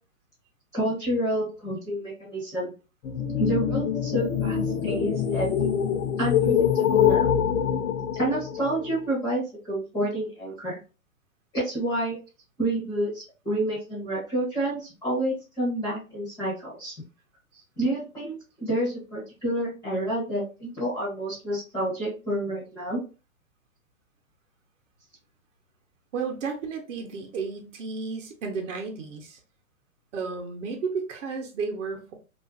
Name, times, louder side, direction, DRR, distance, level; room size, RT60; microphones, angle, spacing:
voice 1, 0.7-2.7 3.4-4.6 4.8-5.5 6.2-7.3 8.1-10.8 11.5-12.2 12.6-16.9 17.8-23.0, right 1 dB, 10° left, -8 dB, 0.4 m, -29 dB
sound 1, 3.0-9.0, left 9 dB, 80° left, 0.7 m, -25 dB
voice 2, 26.1-29.4 30.1-32.1, right 5 dB, 60° right, 2 dB, 0.7 m, -33 dB
2.4 x 2.3 x 2.3 m, 0.32 s
hypercardioid pair, 145°, 43 cm